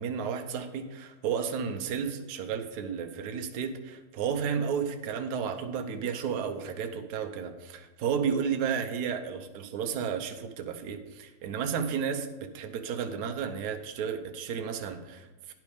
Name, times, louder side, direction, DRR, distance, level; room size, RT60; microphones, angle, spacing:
voice 1, 0.0-15.5, right 7 dB, 60° right, 6 dB, 1.1 m, -32 dB
10.0 x 6.3 x 5.0 m, 1.1 s
omnidirectional pair, 2.3 m